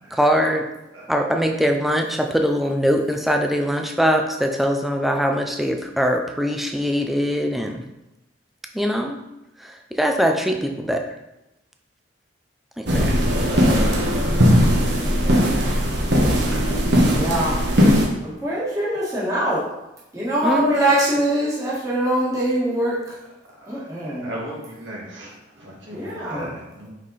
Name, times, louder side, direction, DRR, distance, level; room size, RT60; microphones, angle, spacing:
voice 1, 0.1-0.7 1.1-7.8 8.7-9.2 9.6-11.0 12.8-13.1 20.4-20.8, equal, ahead, 3 dB, 0.5 m, -22 dB
sound 1, 12.9-18.1, equal, 60° right, 1.2 m, -18 dB
voice 2, 15.0-15.5 17.1-17.6 18.4-19.6 20.1-22.9 23.7-24.3 25.9-26.5, right 1 dB, 15° right, -8 dB, 1.7 m, -23 dB
voice 3, 24.0-26.9, equal, 80° right, -5 dB, 1.9 m, -36 dB
5.4 x 5.3 x 4.1 m, 0.93 s
head